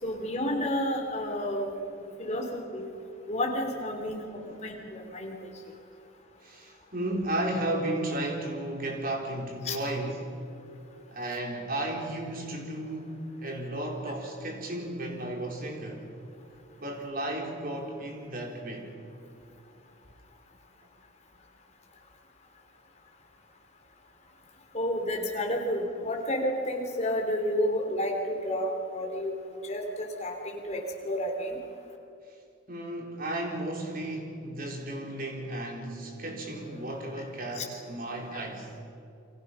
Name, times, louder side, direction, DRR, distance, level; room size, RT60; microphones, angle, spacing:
voice 1, 0.0-1.7 2.2-2.9 3.3-4.3 4.6-5.5 9.6-9.8 24.7-29.4 29.6-31.6 37.6-37.7, left 1 dB, 35° left, 1 dB, 3.6 m, -30 dB
voice 2, 2.0-2.4 3.9-4.1 4.3-4.6 6.4-10.3 11.1-16.1 16.8-18.9 32.7-38.8, right 1 dB, 45° right, 1 dB, 4.1 m, -34 dB
29.5 x 25.0 x 5.8 m, 2.7 s
head